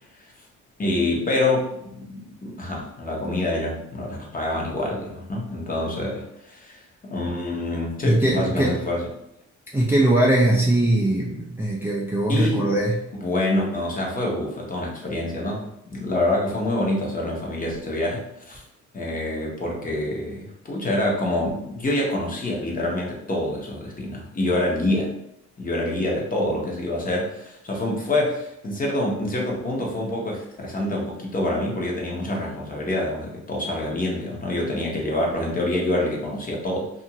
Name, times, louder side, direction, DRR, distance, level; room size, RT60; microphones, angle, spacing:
voice 1, 0.8-6.8 7.1-9.1 12.3-12.7 13.2-18.6 18.9-25.1 25.6-36.9, left 1 dB, 30° left, -2 dB, 0.8 m, -26 dB
voice 2, 8.0-8.8 9.7-12.9, right 1 dB, 10° right, -5 dB, 0.4 m, -20 dB
2.5 x 2.5 x 2.9 m, 0.80 s
cardioid pair, 90°, 30 cm